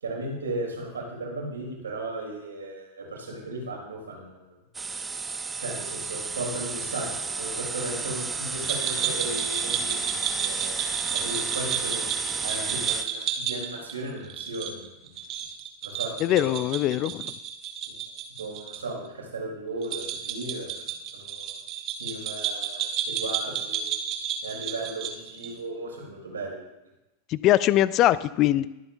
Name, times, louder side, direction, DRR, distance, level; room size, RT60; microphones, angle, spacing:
voice 1, 0.0-4.6 5.6-10.8 11.1-12.0 12.4-15.1 15.8-16.9 17.9-18.0 18.4-21.5 22.0-23.9 24.4-26.6, right 2 dB, 70° right, -1 dB, 3.5 m, -36 dB
sound 1, 4.7-13.1, right 4 dB, 15° right, 0.6 m, -32 dB
sound 2, 8.6-18.8 19.1-19.2 19.8-25.6, right 8 dB, 35° right, 1.2 m, -32 dB
voice 2, 16.2-17.3 27.3-28.7, left 14 dB, 35° left, 18 dB, 0.4 m, -22 dB
21.5 x 7.9 x 2.7 m, 0.97 s
figure-of-eight pair, 90°, 0 cm